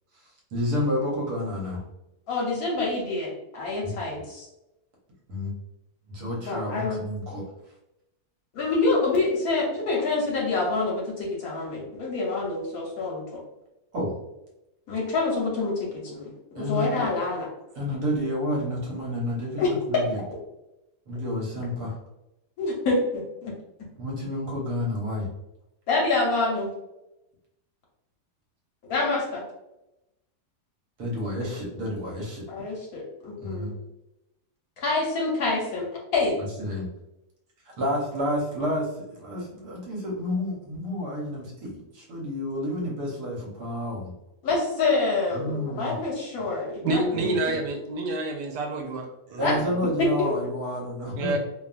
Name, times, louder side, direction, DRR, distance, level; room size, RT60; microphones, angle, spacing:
voice 1, 0.5-1.8 3.8-3.9 5.3-5.5 6.1-7.4 13.9-14.1 16.5-17.0 17.7-19.6 19.9-20.2 21.1-22.0 24.0-25.3 31.0-32.7 33.4-33.7 36.4-36.9 37.8-44.1 45.3-45.9 47.1-47.2 49.3-51.4, left 1 dB, 70° right, -3 dB, 1.4 m, -30 dB
voice 2, 2.3-4.5 6.4-7.0 8.5-13.4 14.9-17.5 19.6-19.7 22.6-23.5 25.9-26.7 28.9-29.4 31.4-31.5 32.5-33.7 34.8-36.4 44.4-47.3 49.4-49.5 50.0-50.3, left 3 dB, 65° left, -3 dB, 1.2 m, -27 dB
voice 3, 46.8-49.6 51.2-51.4, right 2 dB, 85° right, 2 dB, 1.2 m, -28 dB
2.9 x 2.3 x 2.4 m, 0.91 s
omnidirectional pair, 1.8 m